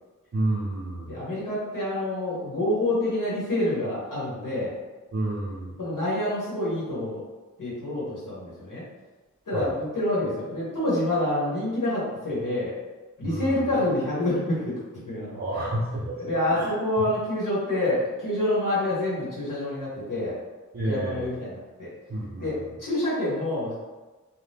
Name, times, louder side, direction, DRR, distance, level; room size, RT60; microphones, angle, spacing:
voice 1, 0.3-1.2 5.1-5.8 9.5-9.7 13.2-13.7 15.3-16.2 16.5-17.0 20.7-21.3 22.1-22.7, right 1 dB, 45° right, -6 dB, 0.6 m, -30 dB
voice 2, 1.1-4.7 5.8-7.2 7.6-8.8 9.5-12.7 13.2-14.8 15.1-15.4 16.2-20.4 20.8-21.9 22.4-23.7, left 1 dB, 80° left, -8 dB, 1.0 m, -27 dB
2.7 x 2.1 x 3.4 m, 1.2 s
wide cardioid pair, 60°, 32 cm